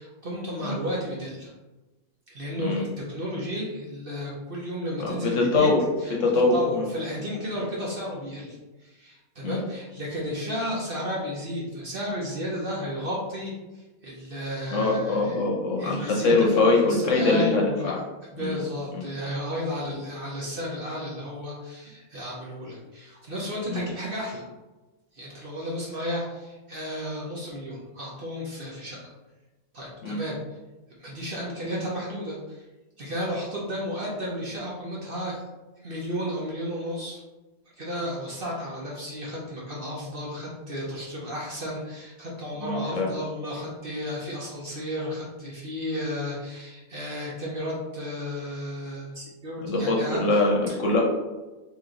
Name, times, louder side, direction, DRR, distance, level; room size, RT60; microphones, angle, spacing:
voice 1, 0.0-1.5 2.3-5.7 6.0-6.1 6.5-15.5 15.8-17.9 18.3-24.4 25.1-29.0 29.7-30.4 31.0-32.6 33.0-35.4 35.8-37.2 37.8-50.8, equal, 45° right, -4 dB, 0.8 m, -33 dB
voice 2, 5.0-5.8 6.2-6.9 9.4-9.6 14.7-18.0 18.4-18.6 18.9-19.1 23.7-23.9 30.0-30.2 42.6-43.1 49.6-51.0, left 3 dB, 65° left, -1 dB, 1.0 m, -23 dB
3.1 x 3.0 x 3.7 m, 1.1 s
omnidirectional pair, 1.5 m